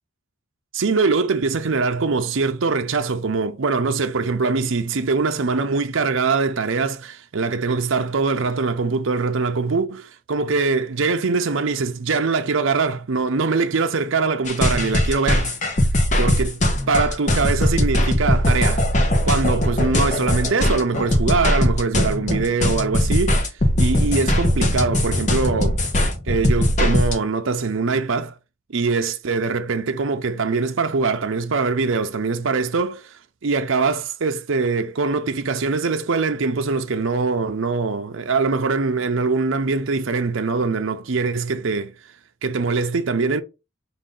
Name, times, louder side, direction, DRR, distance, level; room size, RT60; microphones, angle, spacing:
voice 1, 0.7-15.6 16.2-16.5 16.9-18.9 19.2-23.4 23.8-25.8 26.3-28.3 28.7-41.9 42.4-43.4, right 4 dB, 70° right, 0.6 m, -22 dB
sound 1, 14.4-27.1, left 1 dB, 35° left, 0.7 m, -20 dB
5.0 x 2.5 x 3.7 m
head